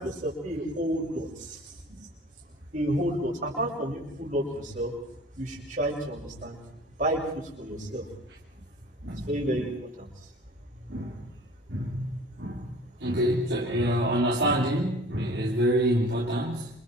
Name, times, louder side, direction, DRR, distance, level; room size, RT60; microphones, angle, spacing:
voice 1, 0.0-1.6 2.7-4.9 5.4-6.6 7.0-8.0 9.3-9.7 10.0-10.1, right 1 dB, 45° right, -2 dB, 6.7 m, -30 dB
voice 2, 9.0-9.7 10.9-11.2 11.7-12.1 12.4-12.7 13.0-16.7, equal, 65° right, -3 dB, 3.3 m, -27 dB
29.5 x 27.5 x 4.6 m, 0.72 s
head